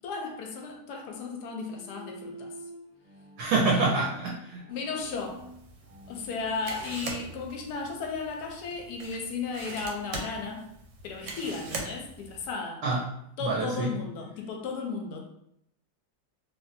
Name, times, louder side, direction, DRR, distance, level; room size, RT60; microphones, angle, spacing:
voice 1, 0.0-2.5 4.7-5.4 6.1-10.7 11.0-12.8 13.4-15.2, left 4 dB, 70° left, 2 dB, 1.0 m, -35 dB
Bowed string instrument, 1.7-6.6, right 1 dB, 20° left, 0.3 m, -48 dB
voice 2, 3.4-4.6 12.8-13.1 13.4-14.0, right 3 dB, 75° right, -3 dB, 1.0 m, -26 dB
sound 1, 5.0-12.5, right 3 dB, 90° right, 1.3 m, -42 dB
3.1 x 2.5 x 2.6 m, 0.76 s
omnidirectional pair, 2.0 m